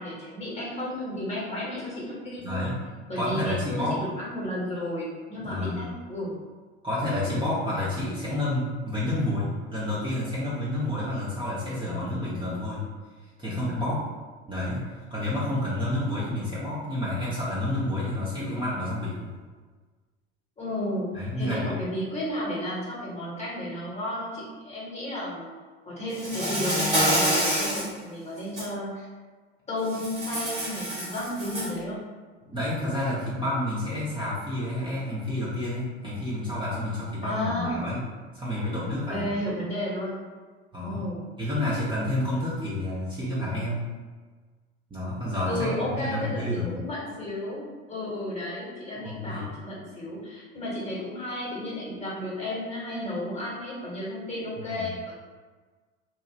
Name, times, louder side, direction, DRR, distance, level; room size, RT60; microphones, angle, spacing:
voice 1, 0.0-2.7 3.1-6.3 20.6-25.5 25.8-29.1 29.7-32.0 37.2-37.9 39.1-40.2 40.8-41.2 45.4-55.1, left 1 dB, 20° left, -6 dB, 1.2 m, -33 dB
voice 2, 2.4-2.8 3.2-4.1 5.4-5.9 6.8-12.9 13.4-14.1 14.5-19.3 21.1-21.7 32.4-38.1 38.3-39.3 40.7-41.0 41.4-43.9 44.9-46.7 49.0-49.5 54.6-54.9, left 1 dB, 15° right, -9 dB, 0.8 m, -29 dB
Insect, 26.1-27.9 28.4-28.7 29.9-31.8, equal, 80° right, 1.3 m, -27 dB
2.8 x 2.3 x 3.2 m, 1.4 s
figure-of-eight pair, 70°, 34 cm